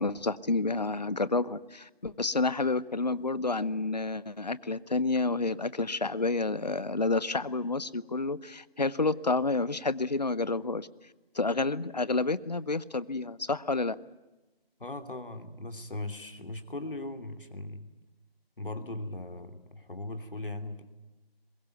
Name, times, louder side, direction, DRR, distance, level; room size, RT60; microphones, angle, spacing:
voice 1, 0.0-10.9 11.3-14.0, left 3 dB, 45° left, 19 dB, 0.8 m, -29 dB
voice 2, 14.8-17.9 18.6-20.9, left 2 dB, 60° left, 8 dB, 2.9 m, -39 dB
23.0 x 21.5 x 9.4 m, 1.1 s
figure-of-eight pair, 165°, 31 cm